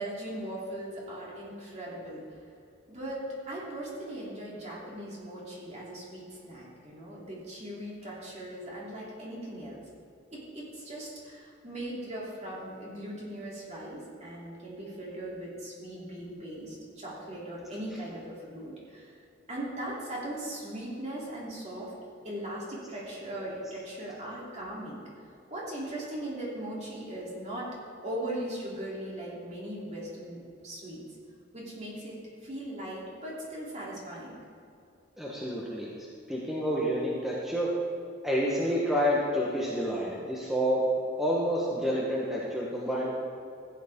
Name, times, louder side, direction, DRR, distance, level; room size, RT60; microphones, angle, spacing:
voice 1, 0.0-2.2 2.9-9.8 10.3-19.1 19.5-21.9 22.2-25.0 25.5-27.7 28.0-31.0 31.5-34.4, right 1 dB, 35° right, -5 dB, 3.1 m, -39 dB
voice 2, 35.2-35.9 36.3-37.7 38.2-40.8 41.2-43.1, equal, ahead, -5 dB, 1.2 m, -29 dB
14.5 x 9.4 x 3.7 m, 2.5 s
head